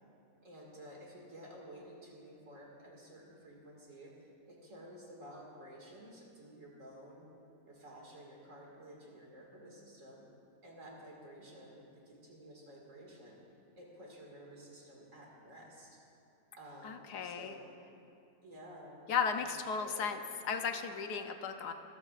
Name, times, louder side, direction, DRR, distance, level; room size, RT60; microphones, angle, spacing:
voice 1, 0.4-4.2 4.5-7.3 7.7-10.3 10.6-13.4 13.8-16.0 16.5-17.7 18.4-19.1 19.4-20.1 20.7-20.8, equal, 50° right, -2 dB, 2.4 m, -53 dB
voice 2, 16.8-17.6 19.1-20.2 20.4-21.7, left 6 dB, 75° left, 6 dB, 1.3 m, -35 dB
24.0 x 13.5 x 2.5 m, 2.7 s
omnidirectional pair, 1.8 m